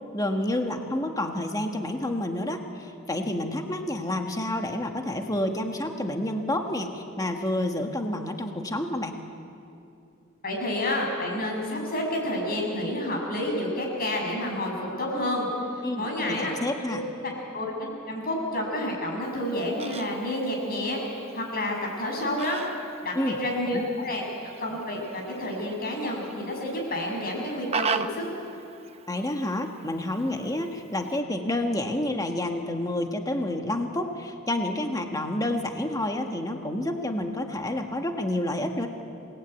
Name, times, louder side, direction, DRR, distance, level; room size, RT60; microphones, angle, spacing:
voice 1, 0.1-9.2 15.8-17.0 23.1-23.4 23.7-23.8 29.1-38.9, left 1 dB, 15° left, 4 dB, 1.6 m, -29 dB
voice 2, 10.4-15.5 15.9-16.5 17.5-21.0 21.3-22.6 23.0-24.2 24.6-28.2, left 1 dB, 45° left, 0 dB, 7.2 m, -29 dB
Fowl, 19.2-31.2, right 6 dB, 30° right, 0.9 m, -39 dB
28.5 x 19.0 x 9.3 m, 2.5 s
head